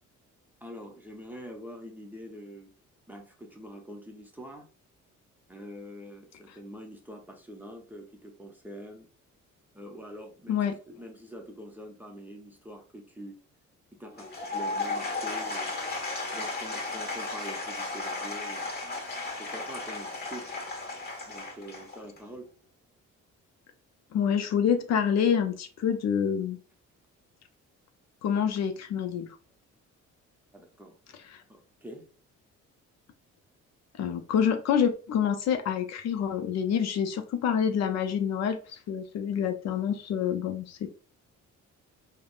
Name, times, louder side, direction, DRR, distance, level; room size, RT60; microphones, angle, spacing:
voice 1, 0.6-2.7 3.1-4.7 5.5-9.1 9.7-13.4 14.0-15.8 16.3-18.7 19.4-20.5 21.3-22.5 30.5-31.0 31.5-32.0, equal, 5° right, 1 dB, 0.6 m, -45 dB
Applause / Crowd, 14.1-22.3, left 3 dB, 30° left, 1.2 m, -35 dB
voice 2, 24.1-26.6 28.2-29.4 34.0-40.9, left 8 dB, 60° left, 7 dB, 0.5 m, -27 dB
3.4 x 2.0 x 2.3 m, 0.38 s
cardioid pair, 90°, 30 cm